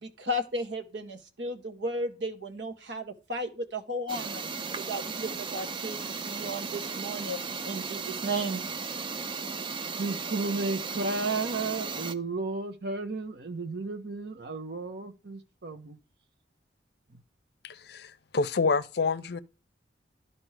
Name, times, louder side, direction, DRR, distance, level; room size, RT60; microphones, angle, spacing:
voice 1, 0.0-4.4 4.8-8.6, right 1 dB, 80° right, 1.3 m, -34 dB
sound 1, 4.1-12.1, right 5 dB, 25° right, 0.4 m, -36 dB
voice 2, 10.0-16.0, right 3 dB, 60° right, 1.0 m, -33 dB
voice 3, 17.6-19.4, left 4 dB, 60° left, 0.5 m, -28 dB
12.5 x 4.3 x 3.3 m
head